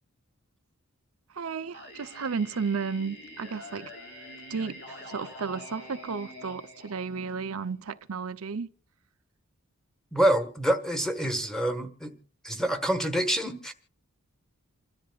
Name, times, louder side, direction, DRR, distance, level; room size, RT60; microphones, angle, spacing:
voice 1, 1.3-3.9 4.5-8.7, right 5 dB, 75° right, 0.6 m, -33 dB
Singing, 1.7-7.7, left 1 dB, 55° left, 3.9 m, -46 dB
voice 2, 10.1-12.1 12.4-13.7, right 1 dB, 5° left, 1.5 m, -26 dB
28.5 x 13.0 x 2.4 m
head